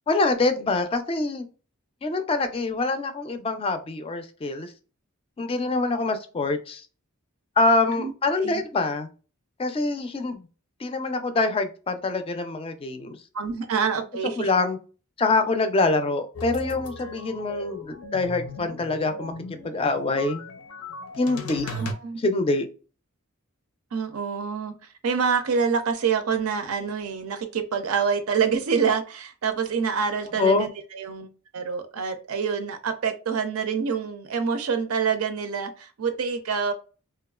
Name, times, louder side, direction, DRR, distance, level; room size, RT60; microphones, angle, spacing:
voice 1, 0.1-1.4 2.0-4.7 5.4-6.8 7.6-9.1 9.6-10.4 10.8-13.2 14.4-14.8 15.2-19.3 19.6-20.4 21.2-21.7 22.2-22.7 30.4-30.7, left 3 dB, 25° left, 0.3 m, -25 dB
voice 2, 13.3-14.5 21.6-22.2 23.9-24.7 25.0-36.7, right 6 dB, 75° right, 0.5 m, -26 dB
sound 1, 16.3-21.9, left 2 dB, 90° left, 0.6 m, -37 dB
2.9 x 2.3 x 2.3 m
head